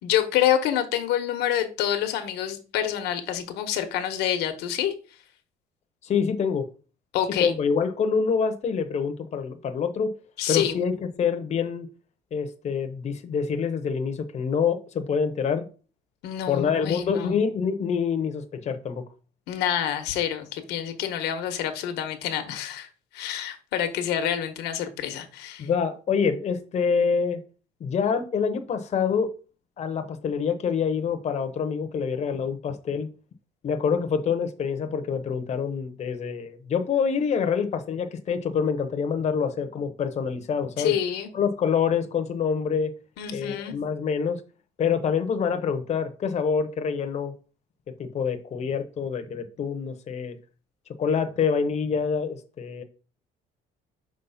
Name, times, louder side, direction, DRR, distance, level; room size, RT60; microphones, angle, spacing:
voice 1, 0.0-4.9 7.1-7.5 10.4-10.8 16.2-17.4 19.5-22.9 23.1-25.7 40.8-41.3 43.2-43.7, left 10 dB, 90° left, 1.1 m, -27 dB
voice 2, 6.0-6.7 7.4-10.1 10.5-10.9 11.2-11.9 12.3-15.6 16.5-19.0 25.6-27.4 27.8-29.3 29.8-33.1 33.6-40.9 41.3-42.9 43.3-44.4 44.8-47.3 47.9-50.4 51.0-52.8, left 6 dB, 40° left, 0.8 m, -26 dB
5.7 x 3.1 x 5.6 m
cardioid pair, 110°, 17 cm